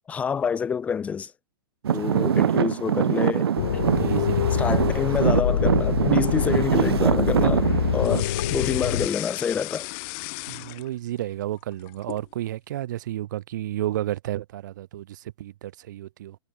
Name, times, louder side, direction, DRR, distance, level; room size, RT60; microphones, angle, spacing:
voice 1, 0.1-1.3 1.9-3.5 4.6-9.9, left 6 dB, 10° left, 4.2 m, -27 dB
Traffic noise roadway noise / Engine, 1.8-8.2, right 8 dB, 85° right, 2.8 m, -23 dB
sound 1, 3.6-9.1, left 10 dB, 65° left, 2.0 m, -25 dB
voice 2, 3.8-4.9 10.5-16.4, right 13 dB, 50° right, 6.4 m, -32 dB
sound 2, 8.0-11.2 11.6-12.3, left 40 dB or more, 30° left, 1.4 m, -35 dB
hypercardioid pair, 170°, 13 cm